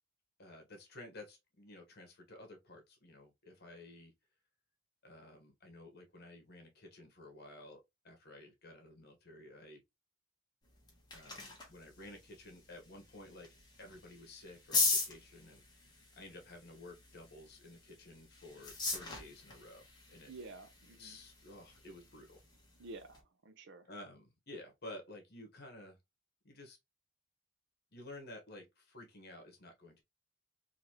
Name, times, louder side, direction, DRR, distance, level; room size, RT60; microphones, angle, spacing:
voice 1, 0.4-4.1 5.0-9.8 11.1-20.3 21.0-22.4 23.8-26.0 26.4-26.8 27.9-30.0, left 1 dB, 55° left, 1.3 m, -53 dB
sound 1, 10.6-23.2, left 3 dB, 20° left, 1.2 m, -41 dB
voice 2, 20.3-21.2 22.8-23.9, right 3 dB, 60° right, 0.7 m, -50 dB
4.0 x 2.8 x 3.0 m
head